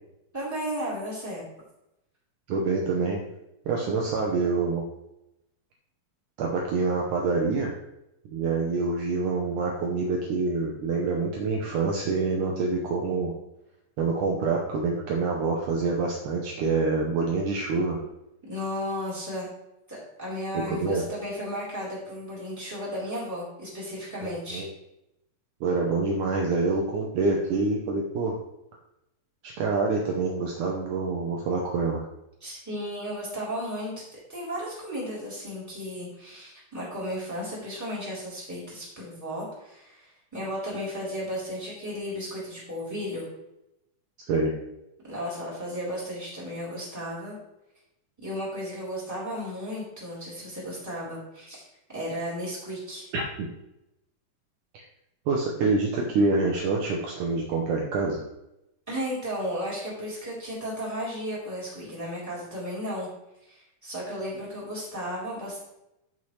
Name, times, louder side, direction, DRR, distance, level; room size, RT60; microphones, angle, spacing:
voice 1, 0.3-1.4 18.5-19.5 19.9-24.6 32.4-34.0 34.3-43.3 45.1-47.4 48.2-51.7 51.9-53.1 58.9-63.1 63.4-65.6, equal, 5° right, -7 dB, 3.4 m, -34 dB
voice 2, 2.5-3.2 3.7-4.8 6.4-7.7 8.3-13.3 14.0-18.0 20.7-21.0 24.2-24.7 25.6-28.4 29.4-32.0 44.3-44.5 53.1-53.3 55.3-58.2, right 3 dB, 70° right, -1 dB, 2.2 m, -26 dB
14.0 x 5.7 x 3.2 m, 0.88 s
omnidirectional pair, 4.0 m